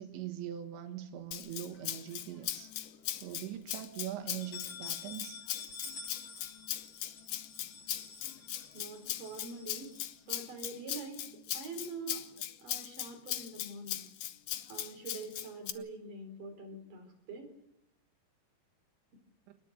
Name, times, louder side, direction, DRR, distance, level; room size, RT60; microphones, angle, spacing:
voice 1, 0.0-2.7 3.1-5.4 19.5-19.6, right 11 dB, 90° right, 6 dB, 3.8 m, -42 dB
Rattle (instrument), 1.3-15.7, left 12 dB, 70° left, 2.1 m, -39 dB
sound 1, 1.7-2.7 3.1-3.2 3.5-3.6 4.2-10.4, left 5 dB, 40° left, 2.0 m, -49 dB
voice 2, 8.7-9.9 10.3-11.3 11.5-12.3 12.6-14.1 14.7-17.5, right 3 dB, 50° right, 3 dB, 5.5 m, -45 dB
25.5 x 20.5 x 7.4 m, 0.80 s
omnidirectional pair, 5.0 m